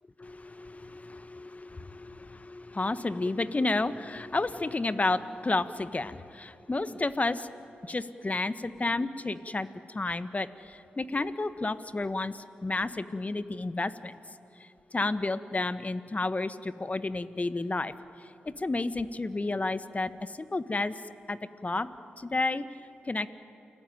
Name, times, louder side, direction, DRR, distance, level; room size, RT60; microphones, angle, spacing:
voice 1, 0.2-14.1 14.6-20.9 21.3-22.7 23.0-23.3, left 2 dB, 35° left, 12 dB, 1.3 m, -31 dB
29.0 x 19.0 x 9.4 m, 2.7 s
supercardioid pair, 40°, 4 cm